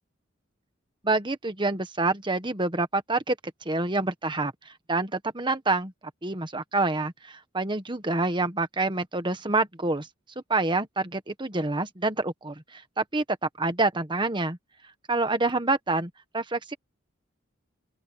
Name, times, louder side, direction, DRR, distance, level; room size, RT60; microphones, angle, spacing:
voice 1, 1.0-3.4 3.6-5.9 6.2-10.1 10.5-14.6 15.1-16.7, right 2 dB, 25° right, 1.5 m, -27 dB
open air
head